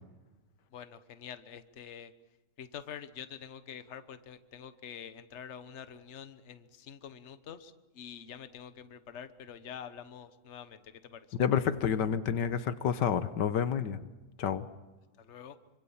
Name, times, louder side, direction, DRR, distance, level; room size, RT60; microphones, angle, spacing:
voice 1, 0.7-2.1 2.6-11.3 15.2-15.6, left 8 dB, 45° left, 11 dB, 1.3 m, -46 dB
voice 2, 11.4-14.0 14.4-14.7, left 8 dB, 80° left, 12 dB, 1.7 m, -29 dB
26.0 x 25.0 x 7.2 m, 1.1 s
omnidirectional pair, 1.9 m